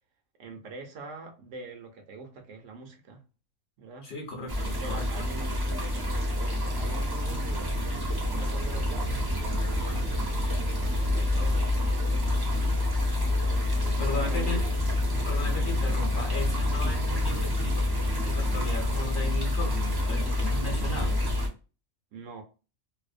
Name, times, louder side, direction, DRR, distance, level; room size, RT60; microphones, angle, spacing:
voice 1, 0.4-3.2 3.8-4.1 4.6-7.7 8.3-10.2 10.8-12.3 13.8-14.7 22.1-22.4, right 3 dB, 70° right, 1.0 m, -44 dB
voice 2, 4.0-5.0 14.0-14.6 15.2-17.9 18.2-21.2, left 2 dB, 50° left, 1.0 m, -36 dB
sound 1, 4.5-21.5, left 1 dB, 25° right, 0.5 m, -27 dB
2.7 x 2.0 x 2.4 m
omnidirectional pair, 1.3 m